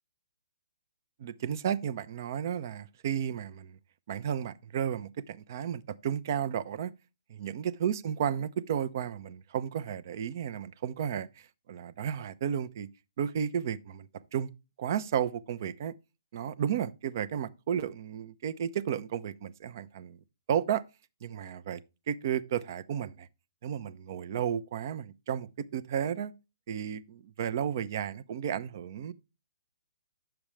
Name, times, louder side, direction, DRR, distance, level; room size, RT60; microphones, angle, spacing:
voice 1, 1.2-3.8 4.1-6.9 7.3-12.9 13.2-14.5 14.8-15.9 16.3-20.2 20.5-20.8 21.2-21.8 22.1-23.3 23.6-26.3 26.7-29.1, right 8 dB, 50° right, 0.7 m, -33 dB
9.0 x 7.0 x 3.2 m
hypercardioid pair, 135°, 2 cm